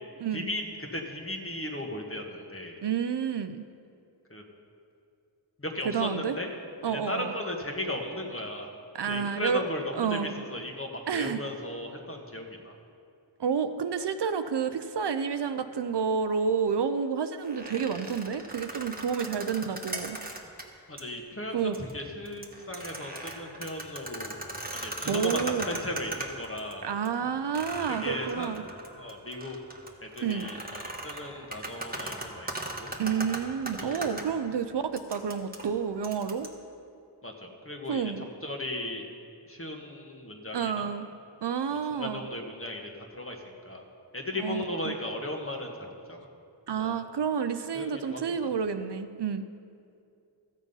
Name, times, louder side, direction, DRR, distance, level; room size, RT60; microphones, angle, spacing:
voice 1, 0.3-2.8 4.3-4.4 5.6-6.5 6.9-8.7 9.1-12.8 20.9-24.4 24.7-25.4 25.7-26.9 27.9-28.6 29.0-29.6 30.0-32.9 33.8-34.2 37.2-38.1 38.4-39.1 39.5-40.9 41.7-43.8 44.1-46.2 46.8-47.0 47.7-48.5, left 1 dB, 30° left, 1 dB, 1.4 m, -36 dB
voice 2, 2.8-3.6 5.8-6.4 6.8-7.3 8.9-9.6 10.0-10.3 11.1-11.4 13.4-20.2 21.5-21.8 25.1-25.7 26.8-28.6 30.2-30.5 33.0-36.5 37.9-38.3 40.5-41.1 41.4-42.3 44.4-44.9 46.7-49.4, right 6 dB, 65° right, 10 dB, 0.6 m, -30 dB
sound 1, 17.4-20.6 21.0-21.1 21.6-21.9 22.3-26.7 27.0-27.1 27.5-34.2 35.0-36.5, right 2 dB, 20° right, 1.3 m, -38 dB
14.0 x 7.2 x 5.5 m, 2.5 s
wide cardioid pair, 70°, 45 cm